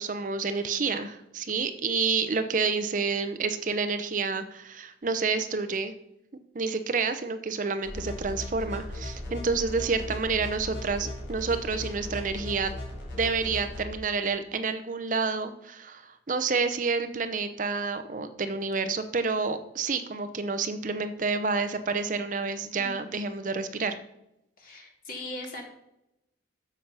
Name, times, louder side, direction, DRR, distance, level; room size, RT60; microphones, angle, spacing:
voice 1, 0.0-5.9 6.5-12.7 13.2-24.0, right 4 dB, 40° right, 9 dB, 0.6 m, -29 dB
sound 1, 7.8-13.8, left 1 dB, 85° left, 3.2 m, -37 dB
voice 2, 22.8-23.5 24.6-25.7, left 1 dB, 45° left, 0 dB, 2.4 m, -41 dB
7.1 x 6.7 x 5.5 m, 0.85 s
head